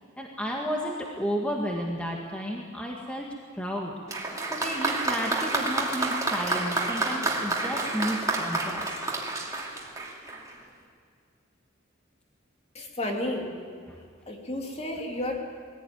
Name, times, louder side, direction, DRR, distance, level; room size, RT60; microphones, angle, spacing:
voice 1, 0.2-3.3 3.5-3.9 4.4-9.0 13.9-14.0, equal, 5° left, -1 dB, 1.7 m, -32 dB
Applause, 4.1-10.5, right 2 dB, 15° right, 2.6 m, -29 dB
voice 2, 12.7-13.5 14.3-15.4, left 1 dB, 30° left, 1 dB, 2.7 m, -32 dB
21.0 x 16.5 x 9.3 m, 2.1 s
head